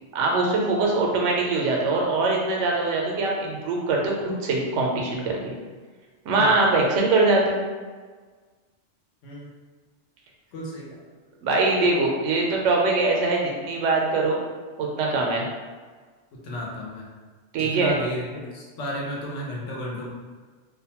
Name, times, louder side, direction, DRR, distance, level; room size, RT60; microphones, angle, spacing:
voice 1, 0.1-5.5 6.3-7.6 11.4-14.4 14.8-15.5 17.5-17.9, right 3 dB, 90° right, -1 dB, 0.9 m, -22 dB
voice 2, 10.5-10.9 16.3-17.1 17.5-20.1, equal, 80° left, -4 dB, 1.0 m, -33 dB
2.5 x 2.1 x 2.8 m, 1.5 s
omnidirectional pair, 1.2 m